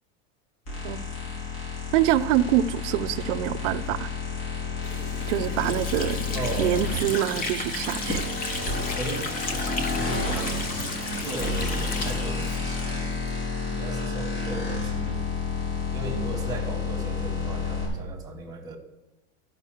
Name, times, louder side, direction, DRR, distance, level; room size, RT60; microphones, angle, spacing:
sound 1, 0.7-17.9, left 4 dB, 45° left, 4.2 m, -30 dB
voice 1, 0.8-1.4 1.9-4.1 5.3-6.2 6.6-8.2, right 12 dB, 70° right, 13 dB, 0.7 m, -25 dB
Water / Sink (filling or washing), 4.8-13.4, left 3 dB, 25° left, 0.8 m, -34 dB
voice 2, 6.3-6.7 8.5-13.2 13.7-15.2 15.9-18.8, right 2 dB, 10° right, 2 dB, 1.4 m, -36 dB
12.5 x 5.3 x 7.2 m, 1.0 s
supercardioid pair, 165°, 37 cm